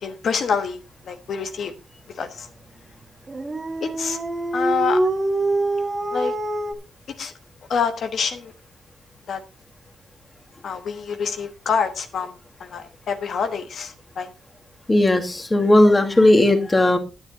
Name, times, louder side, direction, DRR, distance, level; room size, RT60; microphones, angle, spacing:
voice 1, 0.0-0.8 1.1-1.7 2.2-2.5 3.8-4.2 4.5-5.0 6.1-6.3 7.2-7.3 7.7-8.5 9.3-9.4 10.6-12.3 12.6-14.3, left 6 dB, 60° left, 7 dB, 1.3 m, -26 dB
Dog, 3.3-6.7, right 2 dB, 20° right, 1.5 m, -24 dB
voice 2, 14.9-17.0, left 1 dB, 15° left, 6 dB, 2.0 m, -16 dB
11.5 x 10.0 x 4.1 m, 0.29 s
cardioid pair, 140°, 0 cm